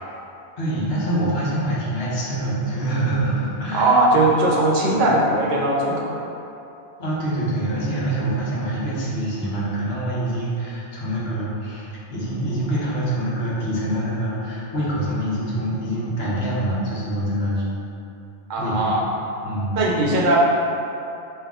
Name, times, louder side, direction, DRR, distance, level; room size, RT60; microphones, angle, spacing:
voice 1, 0.6-4.2 4.9-5.0 7.0-17.6 18.6-19.0 19.4-19.8, right 1 dB, 65° left, -7 dB, 1.1 m, -25 dB
voice 2, 3.7-6.2 18.5-19.1 19.7-20.4, right 2 dB, 55° right, -3 dB, 0.7 m, -19 dB
3.8 x 2.6 x 3.5 m, 2.8 s
omnidirectional pair, 1.2 m